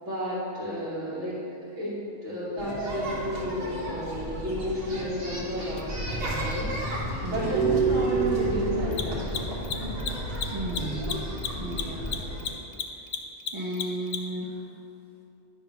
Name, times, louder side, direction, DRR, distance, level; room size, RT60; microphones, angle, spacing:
voice 1, 0.0-1.4 1.7-9.4, equal, 85° right, -11 dB, 1.8 m, -33 dB
sound 1, 2.6-12.5, right 3 dB, 55° right, 1.6 m, -31 dB
Mechanisms, 5.8-5.9 8.8-14.4, left 8 dB, 80° left, 0.9 m, -33 dB
sound 2, 5.9-12.4, equal, 30° left, 1.6 m, -36 dB
voice 2, 7.2-7.5 10.5-11.1 11.6-12.1 13.5-14.6, right 1 dB, 30° right, -6 dB, 0.9 m, -34 dB
9.8 x 3.7 x 5.9 m, 2.7 s
omnidirectional pair, 1.2 m